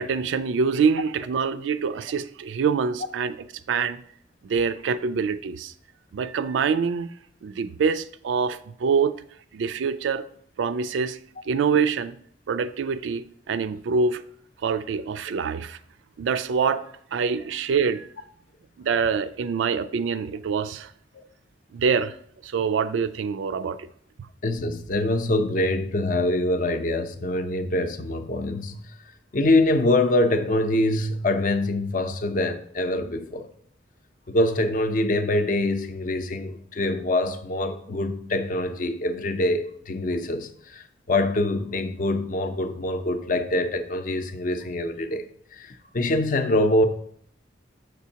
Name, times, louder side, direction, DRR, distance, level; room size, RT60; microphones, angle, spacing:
voice 1, 0.0-3.3 3.7-4.0 4.4-5.7 6.1-7.1 7.4-9.2 9.5-10.2 10.6-11.2 11.5-12.2 12.5-14.2 14.6-15.8 16.2-16.8 17.1-18.1 18.8-20.9 21.7-22.1 22.4-23.9, right 5 dB, 85° right, 0.3 m, -25 dB
voice 2, 24.4-28.9 29.3-33.5 34.3-45.3 45.5-46.9, left 1 dB, 45° left, 0.5 m, -24 dB
6.8 x 6.0 x 2.8 m
head